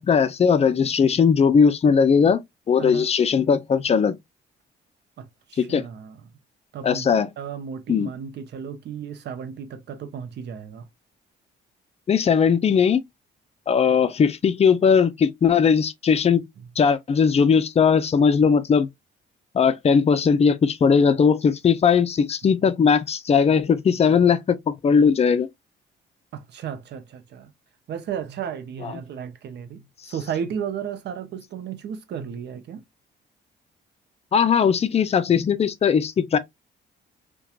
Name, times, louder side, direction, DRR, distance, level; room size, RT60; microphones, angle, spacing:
voice 1, 0.0-2.4 2.7-4.2 5.6-5.8 6.8-7.3 7.9-8.1 12.1-13.0 13.7-16.4 16.8-18.9 19.5-25.5 28.8-28.9 34.3-36.4, left 6 dB, 30° left, 0.4 m, -19 dB
voice 2, 5.2-6.3 6.7-7.1 7.4-10.9 22.4-22.5 26.3-27.5 27.9-32.8, right 8 dB, 60° right, 0.6 m, -34 dB
2.8 x 2.2 x 2.3 m
cardioid pair, 90°, 20 cm